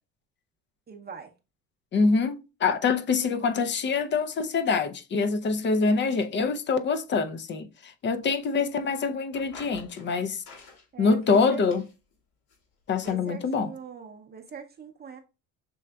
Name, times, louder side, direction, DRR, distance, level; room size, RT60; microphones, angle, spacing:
voice 1, 0.9-1.3 10.9-11.6 13.0-15.2, right 6 dB, 25° right, 0.7 m, -42 dB
voice 2, 1.9-10.4 11.0-11.8 12.9-13.7, left 4 dB, 30° left, 0.5 m, -25 dB
sound 1, 9.3-10.1 10.5-10.8 11.2-12.1 12.5-12.6 13.0-13.1, left 4 dB, 70° left, 2.2 m, -48 dB
6.1 x 3.2 x 2.3 m
supercardioid pair, 100°, 38 cm